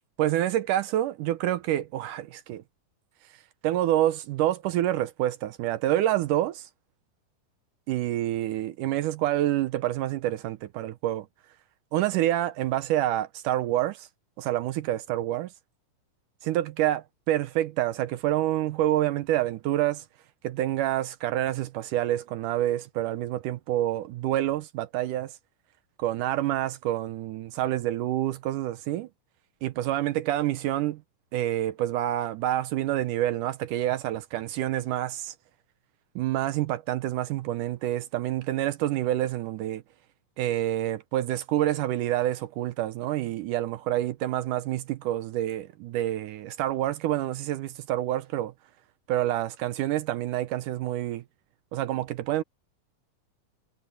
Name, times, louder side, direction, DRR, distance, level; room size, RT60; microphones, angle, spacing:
voice 1, 0.2-2.6 3.6-6.7 7.9-11.3 11.9-14.1 14.4-15.5 16.4-20.0 20.4-25.3 26.0-29.1 29.6-31.0 31.3-35.3 36.2-39.8 40.4-48.5 49.1-51.2 51.7-52.4, right 13 dB, 80° right, 2.2 m, -27 dB
omnidirectional pair, 3.9 m